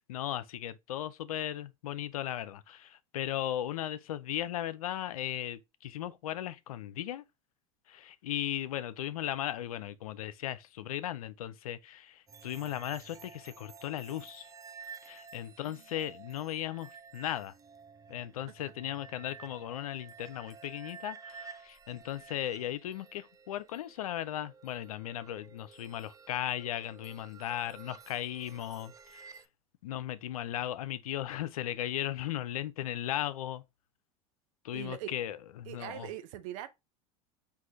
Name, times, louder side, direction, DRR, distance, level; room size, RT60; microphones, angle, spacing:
voice 1, 0.1-7.2 7.9-14.5 15.0-17.5 18.1-29.4 29.8-33.6 34.6-36.1, left 12 dB, 85° left, 0.4 m, -37 dB
sound 1, 12.3-29.5, right 6 dB, 20° right, 0.4 m, -52 dB
voice 2, 34.7-35.1 35.7-36.7, right 12 dB, 70° right, 0.7 m, -41 dB
4.7 x 2.5 x 3.8 m
hypercardioid pair, 90°, 18 cm